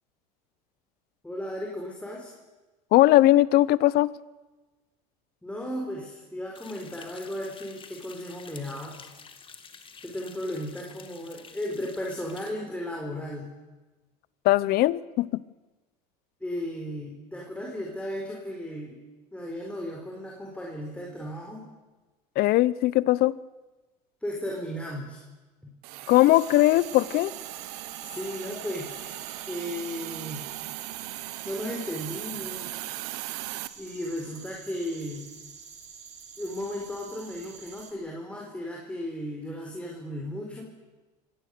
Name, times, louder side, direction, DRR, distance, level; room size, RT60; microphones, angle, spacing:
voice 1, 1.2-2.3 5.4-9.0 10.0-13.5 16.4-19.0 19.3-21.7 24.2-25.2 25.6-25.7 27.9-29.2 29.5-30.5 31.4-32.8 33.8-35.3 36.4-40.7, left 1 dB, 5° left, -1 dB, 4.4 m, -35 dB
voice 2, 2.9-4.1 14.4-15.4 22.4-23.3 26.1-27.3, left 16 dB, 55° left, 20 dB, 0.8 m, -20 dB
sound 1, 6.5-12.5, left 6 dB, 25° left, 2.2 m, -49 dB
Hiss, 25.8-33.7, right 18 dB, 75° right, 1.2 m, -38 dB
sound 2, 26.3-37.9, right 6 dB, 35° right, 4.2 m, -47 dB
25.5 x 18.0 x 6.8 m, 1.2 s
supercardioid pair, 105°, 19 cm